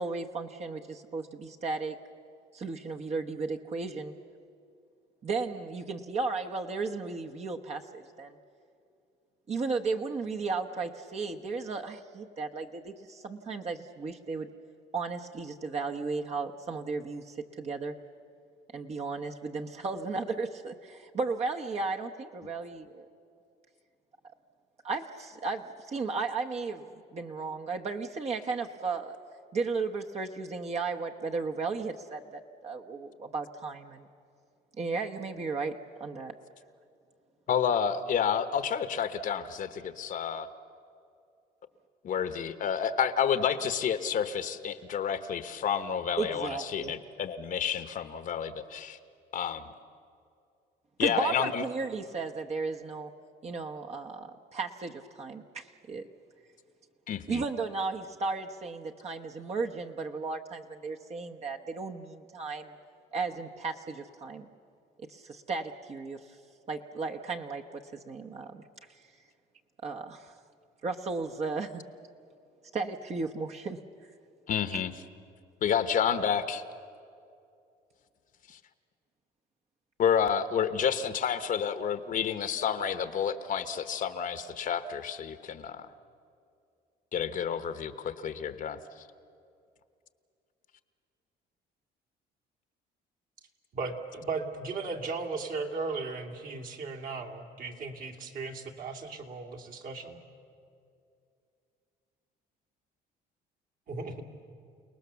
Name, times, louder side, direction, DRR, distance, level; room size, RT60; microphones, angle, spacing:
voice 1, 0.0-2.0 2.5-4.1 5.2-8.4 9.5-14.5 14.9-17.9 18.7-23.1 24.8-29.2 29.5-34.1 34.8-36.4 46.2-46.9 51.0-53.1 53.4-56.0 57.3-62.7 63.1-64.5 65.1-66.4 66.7-68.6 68.9-69.0 69.8-70.3 70.8-71.8 72.7-73.8 74.7-74.8, right 4 dB, 40° right, 2 dB, 1.1 m, -35 dB
voice 2, 37.5-40.5 42.0-49.0 49.3-49.7 51.0-51.6 57.1-57.4 74.5-74.9 75.6-76.6 78.5-78.6 80.0-85.9 87.1-88.8, left 7 dB, 55° left, 11 dB, 1.1 m, -30 dB
voice 3, 93.7-100.2 103.9-104.2, right 4 dB, 55° right, 3 dB, 2.6 m, -36 dB
29.0 x 19.0 x 7.0 m, 2.5 s
cardioid pair, 110°, 17 cm